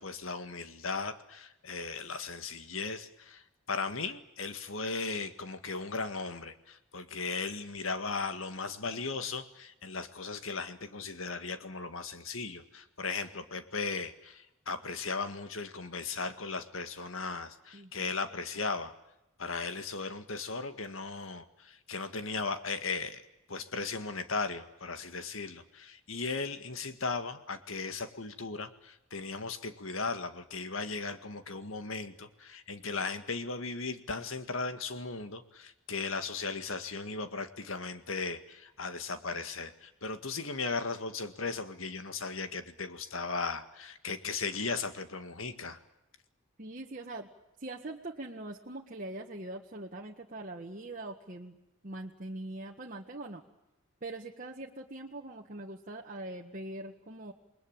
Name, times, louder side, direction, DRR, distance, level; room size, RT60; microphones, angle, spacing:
voice 1, 0.0-18.9 19.4-23.2 23.5-45.8, left 4 dB, 75° left, 9 dB, 1.9 m, -37 dB
voice 2, 17.7-18.1 46.6-47.3 47.6-51.6 51.8-53.4 54.0-57.3, right 2 dB, 40° right, -1 dB, 1.7 m, -42 dB
28.5 x 21.5 x 9.0 m, 0.90 s
head